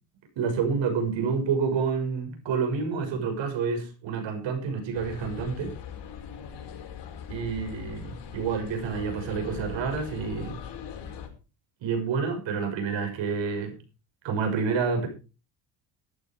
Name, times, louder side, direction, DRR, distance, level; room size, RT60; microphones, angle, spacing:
voice 1, 0.4-5.7 7.3-10.6 11.8-13.8 14.2-15.1, right 5 dB, 65° right, 5 dB, 6.5 m, -28 dB
sound 1, 4.9-11.3, left 7 dB, 55° left, 5.1 m, -40 dB
13.5 x 11.5 x 4.7 m, 0.32 s
supercardioid pair, 80°, 48 cm